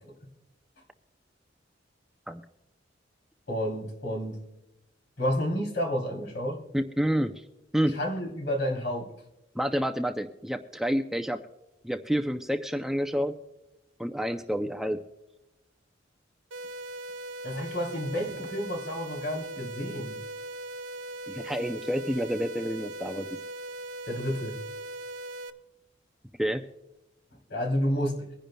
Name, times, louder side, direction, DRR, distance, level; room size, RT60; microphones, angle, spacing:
voice 1, 3.5-4.4 5.2-6.6 7.9-9.1 17.4-20.2 24.1-24.6 27.5-28.2, equal, 65° left, 1 dB, 3.2 m, -30 dB
voice 2, 6.7-7.4 7.7-8.0 9.6-11.4 11.8-13.3 14.0-15.0 21.3-23.3 26.4-26.6, equal, ahead, 6 dB, 0.4 m, -29 dB
sound 1, 16.5-25.5, right 1 dB, 70° right, 0.7 m, -39 dB
24.0 x 10.5 x 2.2 m, 0.94 s
head